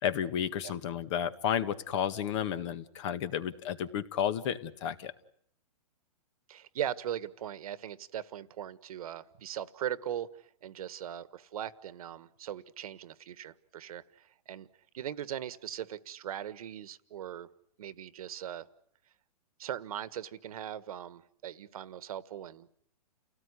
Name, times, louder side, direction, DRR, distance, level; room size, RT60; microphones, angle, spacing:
voice 1, 0.0-5.1, left 9 dB, 50° left, 12 dB, 1.8 m, -32 dB
voice 2, 6.5-14.7 14.9-17.5 17.8-18.7 19.6-22.8, right 10 dB, 65° right, 15 dB, 1.5 m, -39 dB
30.0 x 17.5 x 9.8 m, 0.69 s
hypercardioid pair, 140°, 20 cm